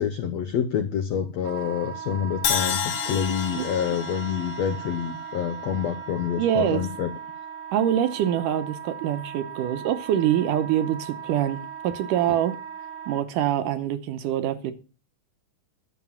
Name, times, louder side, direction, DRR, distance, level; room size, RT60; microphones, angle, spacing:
voice 1, 0.0-7.1 12.3-12.4, left 8 dB, 80° left, 1.5 m, -27 dB
Wind instrument woodwind instrument, 1.4-13.2, right 8 dB, 55° right, 1.6 m, -38 dB
Crash cymbal, 2.4-6.5, left 8 dB, 55° left, 1.8 m, -31 dB
voice 2, 6.4-6.9 7.7-12.6 13.1-14.7, right 10 dB, 75° right, 2.3 m, -25 dB
11.0 x 7.2 x 7.1 m
omnidirectional pair, 4.1 m